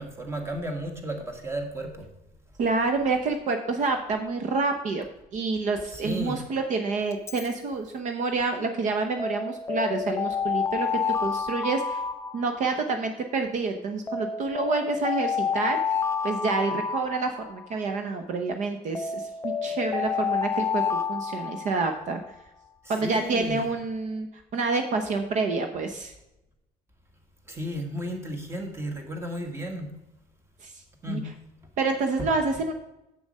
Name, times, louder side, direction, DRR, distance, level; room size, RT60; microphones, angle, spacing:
voice 1, 0.0-2.1 5.9-6.4 22.8-23.6 27.5-29.9 31.0-31.2 32.2-32.3, equal, 15° right, 4 dB, 1.6 m, -33 dB
voice 2, 2.6-5.0 5.3-12.0 12.3-15.8 16.2-22.2 22.9-24.3 24.5-26.1 30.6-30.7 31.1-31.2 31.8-32.7, right 3 dB, 55° right, 6 dB, 0.9 m, -28 dB
Alarm, 7.1-7.5 9.2-13.0 14.1-17.8 18.9-22.2, left 6 dB, 15° left, 0.4 m, -29 dB
7.8 x 7.1 x 5.4 m, 0.92 s
cardioid pair, 150°, 15 cm